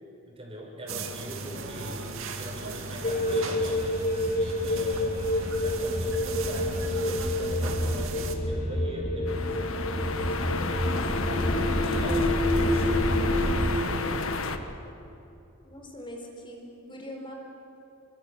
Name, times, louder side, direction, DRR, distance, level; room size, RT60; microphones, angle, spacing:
voice 1, 0.3-5.2 5.6-10.4 11.7-14.2, equal, 25° right, 0 dB, 6.1 m, -42 dB
sound 1, 0.9-8.4, right 3 dB, 70° right, 2.4 m, -37 dB
sound 2, 3.0-13.8, left 1 dB, 40° left, 2.7 m, -27 dB
sound 3, 9.3-14.6, left 3 dB, 75° left, 1.6 m, -32 dB
voice 2, 15.6-17.3, equal, 20° left, 0 dB, 4.9 m, -42 dB
29.5 x 25.5 x 7.5 m, 2.9 s
head